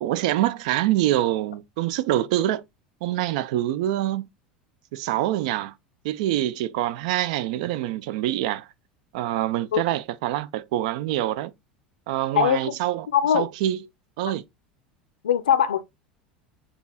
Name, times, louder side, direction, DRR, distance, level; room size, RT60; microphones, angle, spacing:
voice 1, 0.0-2.6 3.0-4.3 4.9-5.7 6.0-8.7 9.1-11.5 12.1-13.1 13.3-13.8 14.2-14.4, right 13 dB, 55° right, 0.4 m, -25 dB
voice 2, 12.3-12.7 13.1-13.5 15.2-15.8, left 9 dB, 70° left, 0.4 m, -21 dB
6.6 x 2.8 x 2.4 m
figure-of-eight pair, 75°, 5 cm